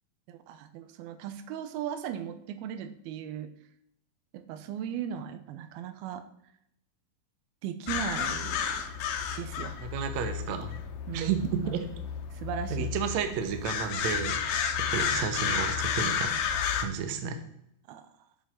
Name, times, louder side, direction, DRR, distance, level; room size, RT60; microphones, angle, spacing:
voice 1, 0.3-3.5 4.3-6.2 7.6-8.8 9.4-9.8 11.1-11.5 12.3-12.9 17.9-18.1, right 9 dB, 85° right, 9 dB, 2.7 m, -37 dB
sound 1, 7.9-16.8, left 7 dB, 80° left, 2.8 m, -32 dB
voice 2, 9.8-10.8 11.1-11.8 12.7-16.4 16.7-17.4, right 7 dB, 65° right, 7 dB, 2.0 m, -32 dB
7.8 x 7.5 x 5.6 m, 0.75 s
omnidirectional pair, 4.3 m